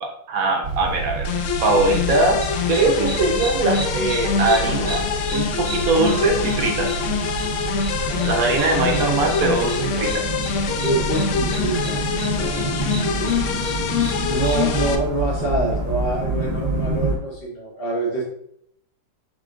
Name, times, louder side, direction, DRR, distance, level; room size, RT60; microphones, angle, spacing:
voice 1, 0.0-1.3 1.6-5.0 5.3-7.0 8.2-10.3, right 3 dB, 65° right, 2 dB, 1.1 m, -21 dB
sound 1, 0.6-17.2, right 2 dB, 40° right, 1.2 m, -28 dB
sound 2, 1.2-15.0, left 6 dB, 80° left, 0.6 m, -25 dB
sound 3, 2.4-14.6, right 2 dB, 10° right, 0.6 m, -37 dB
voice 2, 10.7-12.8 13.1-13.4 14.2-18.2, right 1 dB, 40° left, -4 dB, 0.9 m, -26 dB
5.0 x 4.2 x 2.5 m, 0.70 s
omnidirectional pair, 1.9 m